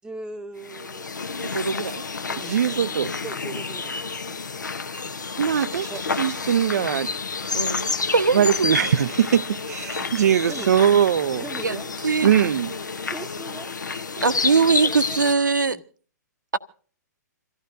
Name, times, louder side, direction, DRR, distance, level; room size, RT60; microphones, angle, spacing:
voice 1, 0.0-1.1 2.3-4.0 4.3-4.4 5.9-6.0 10.0-10.1 10.5-10.7 11.4-11.9 13.1-13.7 14.1-15.2 15.7-15.8, right 3 dB, 10° right, 0.9 m, -39 dB
sound 1, 0.6-15.3, left 5 dB, 80° left, 1.0 m, -30 dB
voice 2, 1.4-2.0 7.5-8.7 11.6-11.8 12.0-12.3 14.2-15.8, right 4 dB, 80° right, 1.2 m, -22 dB
voice 3, 2.4-3.1 5.4-5.9 6.2-7.1 8.3-11.4 12.2-12.7, right 9 dB, 60° right, 0.6 m, -21 dB
27.5 x 15.0 x 2.6 m
figure-of-eight pair, 120°, 10 cm